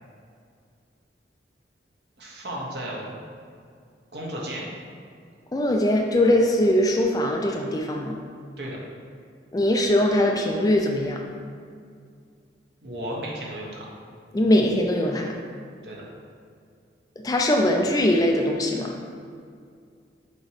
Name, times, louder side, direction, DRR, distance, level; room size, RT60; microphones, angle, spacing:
voice 1, 2.2-3.2 4.1-4.7 8.6-8.8 12.8-13.9 15.8-16.1, right 1 dB, 65° right, -4 dB, 1.2 m, -34 dB
voice 2, 5.5-8.2 9.5-11.2 14.3-15.3 17.2-18.9, left 1 dB, 20° left, 1 dB, 0.4 m, -21 dB
6.4 x 3.0 x 4.9 m, 2.2 s
head